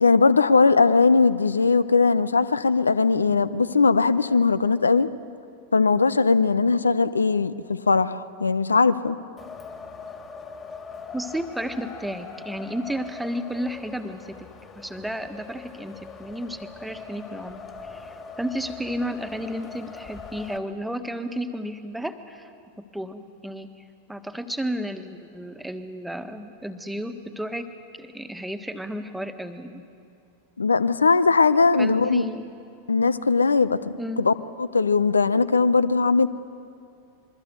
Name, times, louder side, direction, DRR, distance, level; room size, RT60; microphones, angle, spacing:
voice 1, 0.0-5.1 5.7-9.2 30.6-32.2 32.9-36.3, left 4 dB, 75° left, 15 dB, 0.8 m, -20 dB
Wind, 9.4-20.6, left 5 dB, 20° left, 2.7 m, -41 dB
voice 2, 11.1-14.5 14.7-22.5 22.8-23.7 24.1-27.7 28.0-29.8 31.8-32.5 34.0-34.3, equal, 5° right, 9 dB, 1.6 m, -33 dB
27.0 x 23.0 x 8.1 m, 2.5 s
figure-of-eight pair, 90°, 0 cm